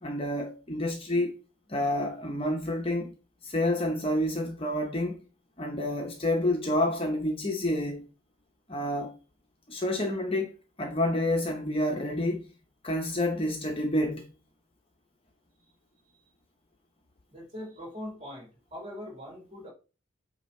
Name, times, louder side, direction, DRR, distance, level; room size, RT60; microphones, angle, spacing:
voice 1, 0.0-1.3 1.7-3.1 3.4-5.2 5.6-8.1 8.7-9.1 9.7-10.5 10.8-12.4 12.8-14.3, left 1 dB, 25° left, 0.8 m, -28 dB
voice 2, 17.3-19.7, left 1 dB, 30° right, 2.9 m, -41 dB
8.3 x 2.9 x 4.2 m
head